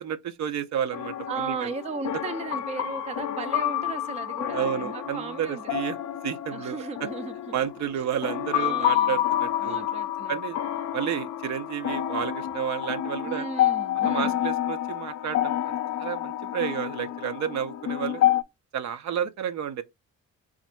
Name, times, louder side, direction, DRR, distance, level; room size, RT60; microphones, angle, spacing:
voice 1, 0.0-1.7 4.5-6.0 6.2-6.8 7.5-9.9 10.3-10.6 10.9-13.5 14.0-18.2 18.7-19.8, right 9 dB, 65° right, 0.6 m, -31 dB
sound 1, 0.9-18.4, left 12 dB, 65° left, 0.5 m, -29 dB
voice 2, 1.3-5.9 6.5-7.5 7.9-8.0 8.5-9.2 9.6-10.6 13.3-14.4, right 5 dB, 25° right, 0.4 m, -36 dB
4.1 x 2.5 x 4.2 m
cardioid pair, 90°, 30 cm